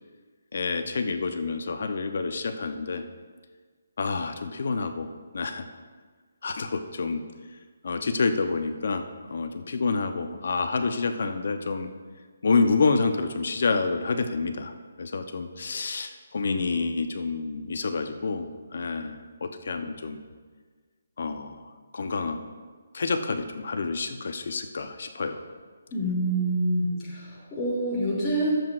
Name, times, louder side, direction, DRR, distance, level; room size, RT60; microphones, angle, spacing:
voice 1, 0.5-3.0 4.0-5.1 5.3-5.7 6.4-7.2 7.8-9.0 9.3-11.9 12.4-20.2 21.2-21.6 21.9-22.4 22.9-25.4, left 4 dB, 60° left, 7 dB, 0.7 m, -28 dB
voice 2, 25.9-28.5, right 1 dB, 15° left, -9 dB, 2.6 m, -27 dB
15.0 x 7.8 x 2.5 m, 1.5 s
hypercardioid pair, 155°, 0 cm